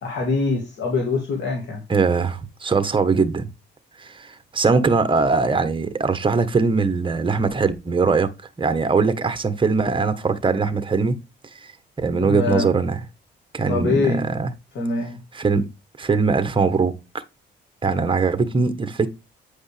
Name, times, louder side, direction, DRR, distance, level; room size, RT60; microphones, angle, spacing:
voice 1, 0.0-1.8 12.2-12.7 13.7-14.2 14.7-15.2, left 3 dB, 65° left, 2.5 m, -24 dB
voice 2, 1.9-3.5 4.0-8.3 8.6-11.2 11.6-11.7 12.0-13.0 13.5-14.5 15.3-15.7 16.0-17.0 17.8-19.1, right 4 dB, 25° right, 1.2 m, -21 dB
9.1 x 5.3 x 3.4 m
cardioid pair, 90°, 20 cm